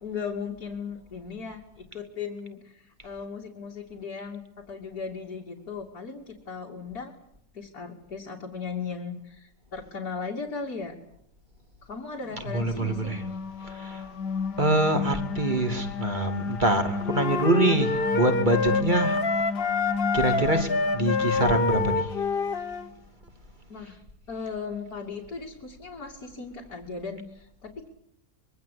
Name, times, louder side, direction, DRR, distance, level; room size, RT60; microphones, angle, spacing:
voice 1, 0.0-7.1 7.5-10.9 11.8-13.1 23.7-24.0 24.3-27.9, left 5 dB, 65° left, -1 dB, 3.3 m, -37 dB
sound 1, 12.4-22.9, left 5 dB, 90° left, 1.8 m, -34 dB
voice 2, 12.5-13.2 13.6-14.1 14.6-19.2 20.1-22.1, right 2 dB, 30° right, 6 dB, 2.9 m, -25 dB
sound 2, 17.1-22.9, left 4 dB, 35° left, 1.3 m, -26 dB
25.0 x 23.0 x 8.6 m, 0.73 s
omnidirectional pair, 1.7 m